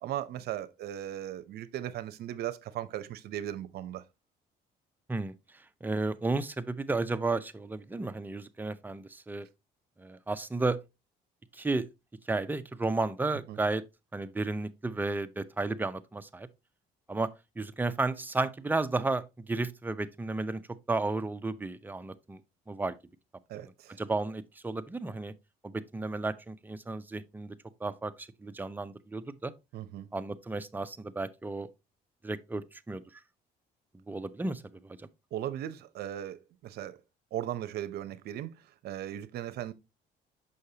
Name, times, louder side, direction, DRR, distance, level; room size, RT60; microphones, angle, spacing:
voice 1, 0.0-4.0 13.5-13.6 23.5-24.0 29.7-30.1 35.3-37.0 37.3-39.7, right 12 dB, 70° right, 0.7 m, -37 dB
voice 2, 5.8-9.5 10.0-10.8 11.5-11.8 12.3-13.8 14.1-16.5 17.1-17.3 17.6-20.6 20.9-22.4 22.7-23.0 23.5-23.6 24.0-25.3 25.6-27.5 27.8-29.5 30.1-31.7 32.2-33.0 34.1-35.1, right 3 dB, 10° right, 0.5 m, -33 dB
6.4 x 5.6 x 2.8 m
cardioid pair, 110°, 17 cm